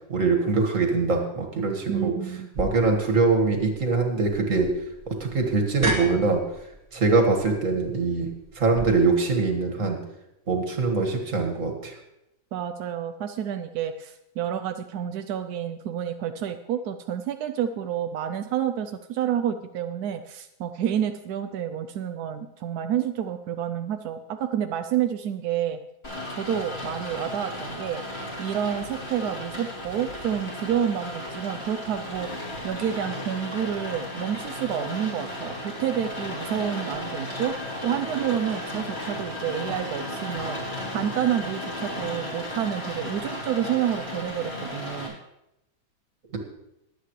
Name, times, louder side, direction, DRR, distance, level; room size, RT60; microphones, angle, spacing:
voice 1, 0.1-2.1 2.6-4.7 5.1-6.4 6.9-8.3 8.6-10.0 10.5-11.9, right 3 dB, 40° right, 2 dB, 2.1 m, -23 dB
voice 2, 1.9-2.5 12.5-25.8 26.4-28.0 28.4-32.3 32.6-37.6 37.8-40.6 40.9-45.1, right 9 dB, 70° right, 6 dB, 0.9 m, -29 dB
sound 1, 2.5-8.8, right 1 dB, 10° right, 1.7 m, -35 dB
Rain, 26.0-45.1, left 1 dB, 30° left, 3.7 m, -35 dB
22.0 x 8.3 x 3.2 m, 0.87 s
omnidirectional pair, 2.2 m